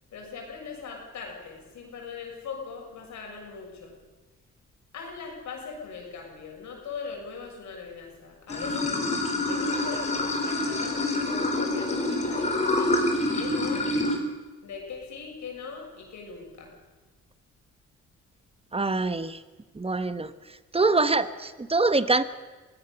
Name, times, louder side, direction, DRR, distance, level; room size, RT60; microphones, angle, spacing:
voice 1, 0.1-4.0 4.9-9.0 9.5-12.9 13.3-13.9 14.6-16.7, left 5 dB, 75° left, 1 dB, 6.6 m, -40 dB
Water / Sink (filling or washing), 8.5-14.2, left 2 dB, 25° left, 4.1 m, -27 dB
voice 2, 18.7-19.4 19.7-20.3 20.7-22.2, right 3 dB, 20° right, 13 dB, 1.1 m, -24 dB
23.5 x 16.5 x 6.9 m, 1.3 s
cardioid pair, 95°, 29 cm